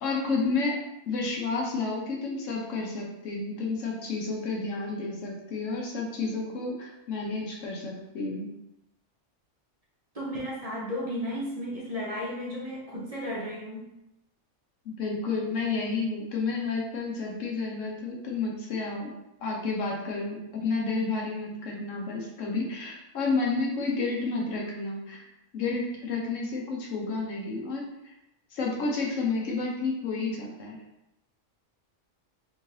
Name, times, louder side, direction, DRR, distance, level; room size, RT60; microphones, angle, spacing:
voice 1, 0.0-8.5 15.0-19.1 19.4-25.3 25.5-27.9 28.5-30.8, left 3 dB, 90° left, -1 dB, 1.2 m, -31 dB
voice 2, 10.1-13.9, equal, 35° right, -6 dB, 0.9 m, -34 dB
3.7 x 3.1 x 2.8 m, 0.87 s
omnidirectional pair, 1.3 m